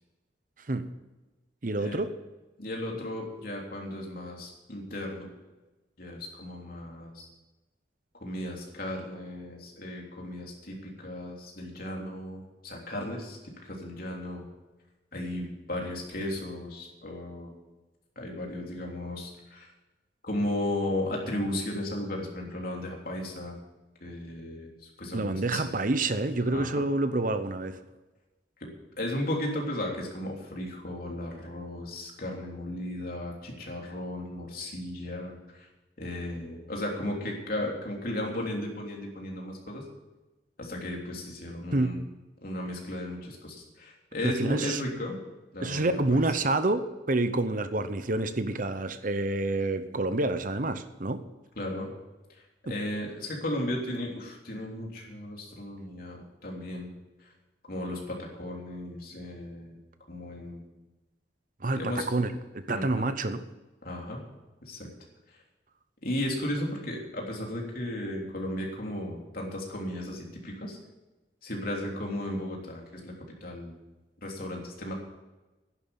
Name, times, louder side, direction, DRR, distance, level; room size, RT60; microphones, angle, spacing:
voice 1, 1.6-2.1 25.1-27.8 41.7-42.0 44.2-44.8 45.6-51.2 52.7-52.8 61.6-63.4, right 2 dB, 45° right, 10 dB, 0.9 m, -28 dB
voice 2, 2.6-5.3 6.0-7.3 8.1-14.5 15.1-17.5 18.1-19.7 20.2-23.5 24.0-25.7 26.5-26.8 28.6-28.7 29.0-35.7 36.0-39.8 40.6-42.1 42.4-45.2 45.5-46.2 51.5-51.9 52.3-56.9 57.2-57.3 57.7-59.8 60.1-60.6 61.7-62.1 62.7-63.1 63.8-64.2 64.6-64.9 65.3-65.4 66.0-70.8 71.4-73.7 74.2-74.9, left 1 dB, 50° left, 0 dB, 3.4 m, -35 dB
11.5 x 11.0 x 7.1 m, 1.1 s
head